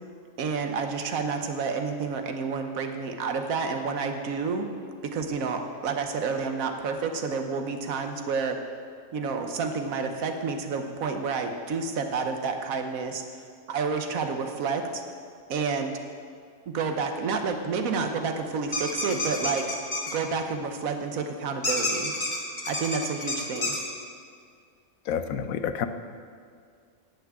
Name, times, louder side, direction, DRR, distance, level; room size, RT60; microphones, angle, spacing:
voice 1, 0.4-4.7 5.0-8.6 9.1-13.2 13.7-15.0 15.5-15.9 16.7-19.6 20.1-22.1 22.7-23.8, right 5 dB, 90° right, 6 dB, 1.4 m, -29 dB
sound 1, 18.7-20.1 21.6-23.8, left 2 dB, 35° left, 1.6 m, -29 dB
voice 2, 25.1-25.9, left 8 dB, 85° left, 10 dB, 1.1 m, -29 dB
11.0 x 5.9 x 8.7 m, 2.1 s
omnidirectional pair, 1.4 m